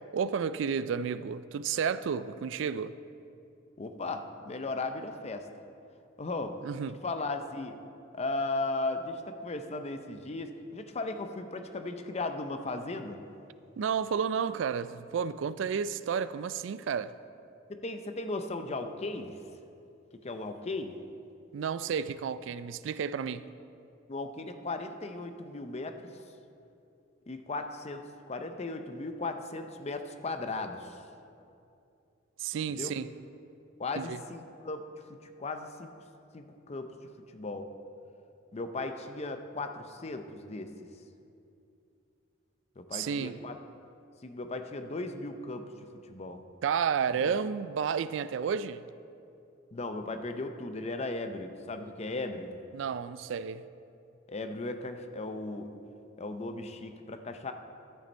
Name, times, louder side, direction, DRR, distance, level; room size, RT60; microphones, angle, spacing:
voice 1, 0.1-3.0 6.6-7.0 13.8-17.1 21.5-23.4 32.4-33.1 34.0-34.2 42.9-43.4 46.6-48.8 52.7-53.6, right 7 dB, 70° right, 15 dB, 0.3 m, -31 dB
voice 2, 3.8-5.5 6.2-6.6 7.0-7.8 8.1-13.2 17.7-19.3 20.2-21.0 24.1-26.0 27.3-31.0 32.7-32.9 33.8-34.8 35.1-35.9 36.3-36.9 37.3-37.7 38.5-40.7 42.8-43.6 44.2-45.7 46.1-46.4 47.2-47.3 49.7-52.5 54.3-55.7 56.2-57.5, left 2 dB, 35° left, 7 dB, 0.6 m, -36 dB
12.0 x 6.8 x 4.4 m, 2.6 s
head